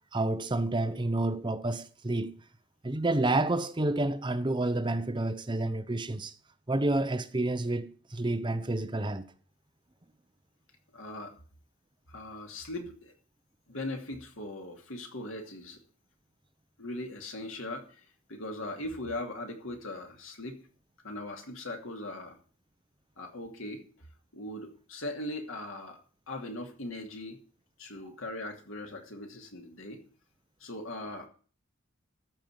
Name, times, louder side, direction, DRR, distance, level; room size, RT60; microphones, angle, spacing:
voice 1, 0.1-2.3 2.8-6.3 6.7-9.3, right 2 dB, 25° right, 0.7 m, -29 dB
voice 2, 10.9-11.3 12.1-13.1 13.7-15.8 16.8-20.7 21.0-22.4 23.2-23.8 24.3-26.0 26.3-27.4 27.8-30.0 30.6-31.3, left 1 dB, 80° left, 2.5 m, -39 dB
13.5 x 5.3 x 7.9 m
head